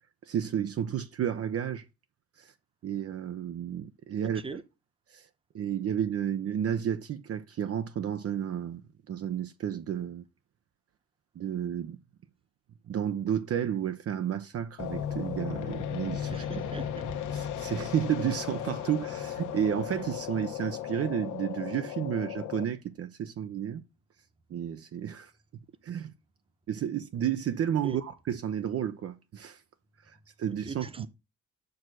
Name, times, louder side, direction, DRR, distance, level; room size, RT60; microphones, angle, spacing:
voice 1, 0.2-1.8 2.4-2.5 2.8-4.6 5.1-5.3 5.5-8.8 9.1-10.3 11.4-12.0 12.9-16.6 17.3-23.8 24.5-25.3 25.8-26.1 26.7-29.6 30.0-31.1, right 9 dB, 50° right, 0.6 m, -32 dB
sound 1, 14.8-22.6, left 9 dB, 80° left, 1.1 m, -36 dB
voice 2, 16.3-17.1 27.8-28.0 30.6-31.1, right 4 dB, 20° right, 0.9 m, -41 dB
6.1 x 4.8 x 6.1 m
cardioid pair, 90°, 30 cm